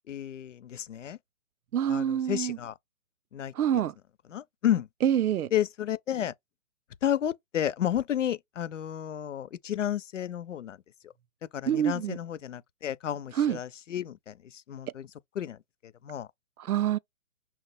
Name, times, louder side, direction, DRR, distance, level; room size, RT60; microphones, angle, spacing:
voice 1, 0.1-1.2 1.9-2.7 3.3-3.5 4.3-4.9 5.5-6.3 7.0-10.8 11.0-11.1 11.5-15.1 15.4-15.6 15.8-16.3, left 10 dB, 60° left, 0.5 m, -31 dB
voice 2, 1.7-2.6 3.5-3.9 5.0-5.5 11.7-12.2 13.3-13.6 16.6-17.0, right 10 dB, 85° right, 0.6 m, -26 dB
5.9 x 2.1 x 4.0 m
hypercardioid pair, 165°, 43 cm